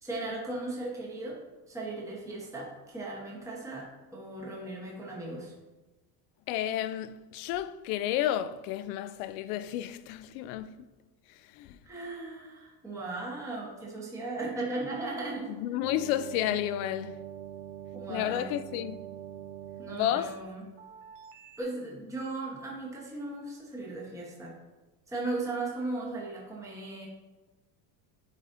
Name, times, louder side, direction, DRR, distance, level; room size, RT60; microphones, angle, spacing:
voice 1, 0.0-1.4 1.7-5.5 11.8-15.6 17.9-18.5 19.8-20.6 21.6-24.5 25.1-27.1, right 2 dB, 5° right, 1.0 m, -37 dB
voice 2, 6.5-10.9 11.5-11.8 15.6-17.2 18.1-19.0 19.9-20.3, left 12 dB, 75° left, 0.5 m, -31 dB
sound 1, 15.8-21.6, right 10 dB, 80° right, 0.8 m, -44 dB
9.1 x 4.1 x 2.6 m
supercardioid pair, 130°, 46 cm